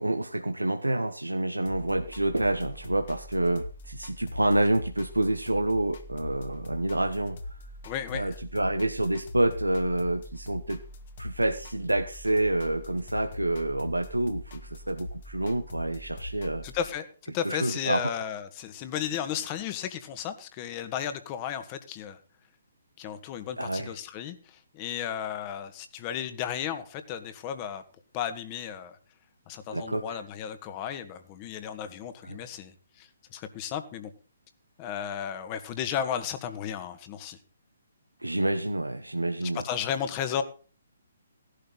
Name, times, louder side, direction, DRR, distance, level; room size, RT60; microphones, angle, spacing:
voice 1, 0.0-7.6 8.1-10.8 11.2-16.6 17.4-18.1 23.6-23.9 29.7-30.2 32.2-32.4 38.2-39.6, right 1 dB, 90° right, 6 dB, 1.1 m, -28 dB
sound 1, 1.7-16.9, left 1 dB, 50° left, 2.1 m, -42 dB
voice 2, 7.8-8.3 16.6-22.2 23.0-27.8 28.1-29.0 29.5-34.1 34.8-37.4 39.5-40.4, left 9 dB, 30° left, 10 dB, 1.8 m, -34 dB
17.0 x 11.5 x 4.1 m, 0.38 s
figure-of-eight pair, 135°, 0 cm